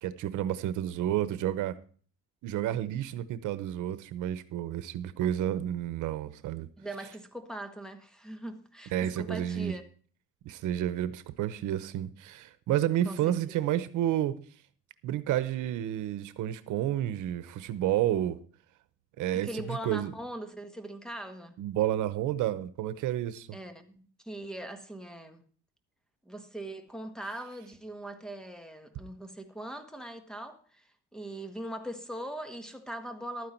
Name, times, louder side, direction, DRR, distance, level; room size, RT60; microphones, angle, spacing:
voice 1, 0.0-1.8 2.4-6.7 8.9-9.7 10.4-14.4 15.0-18.4 19.2-20.1 21.6-23.5, right 12 dB, 85° right, 0.9 m, -30 dB
voice 2, 6.8-9.8 13.0-13.6 19.3-21.6 23.5-25.4 26.2-33.5, right 1 dB, ahead, 1.6 m, -41 dB
12.5 x 9.5 x 4.5 m
cardioid pair, 115°, 30 cm